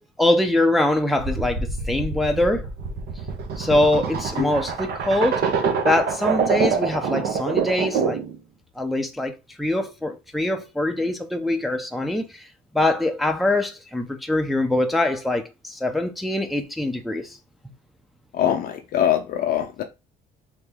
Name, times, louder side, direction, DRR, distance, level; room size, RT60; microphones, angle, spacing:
voice 1, 0.2-2.7 3.6-8.2 8.8-12.5 12.7-17.4, left 1 dB, ahead, 0.5 m, -23 dB
sound 1, 1.2-8.3, right 5 dB, 70° right, 0.8 m, -25 dB
voice 2, 18.3-19.8, left 10 dB, 60° left, 0.5 m, -23 dB
3.0 x 2.7 x 3.4 m
cardioid pair, 110°, 17 cm